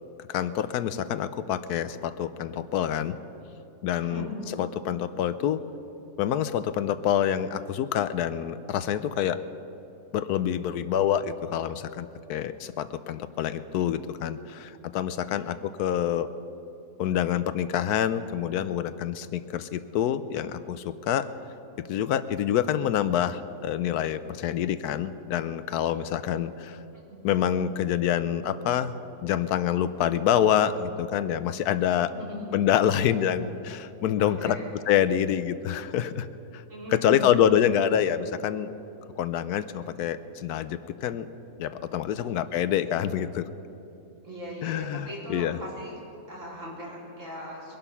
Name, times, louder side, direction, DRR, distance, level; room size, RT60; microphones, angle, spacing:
voice 1, 0.3-3.2 3.8-4.3 4.6-5.6 6.2-9.4 10.1-16.3 17.0-21.3 21.9-26.8 27.2-28.9 29.2-32.1 32.5-34.6 34.9-36.6 36.9-38.7 39.2-41.3 41.6-43.4 44.6-45.6, left 10 dB, 85° left, 13 dB, 1.2 m, -26 dB
voice 2, 4.0-4.3 15.3-15.4 32.1-32.4 34.2-34.7 36.7-37.5 42.2-42.5 44.2-45.9 46.3-47.8, equal, 55° right, -5 dB, 4.1 m, -39 dB
22.5 x 11.0 x 5.7 m, 2.9 s
omnidirectional pair, 1.6 m